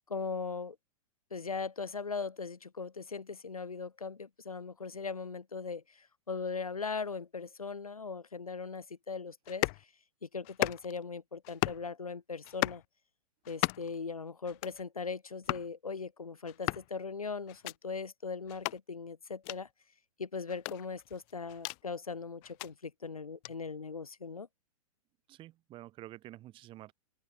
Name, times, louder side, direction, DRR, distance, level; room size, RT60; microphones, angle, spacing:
voice 1, 0.1-0.8 1.3-9.9 10.2-12.8 13.5-19.7 20.2-24.5, left 5 dB, 75° left, 4.8 m, -39 dB
sound 1, 9.5-9.8 10.4-11.0 11.4-11.9 12.4-12.8 13.4-14.0 14.4-14.8 15.4-15.7 16.4-16.9 17.5-17.8 18.5-18.8 19.4-19.6 20.5-21.8 22.4-22.7 23.4-23.5, left 40 dB or more, 35° left, 1.9 m, -35 dB
voice 2, 25.3-26.9, right 15 dB, 25° right, 5.6 m, -49 dB
open air
figure-of-eight pair, 105°, 19 cm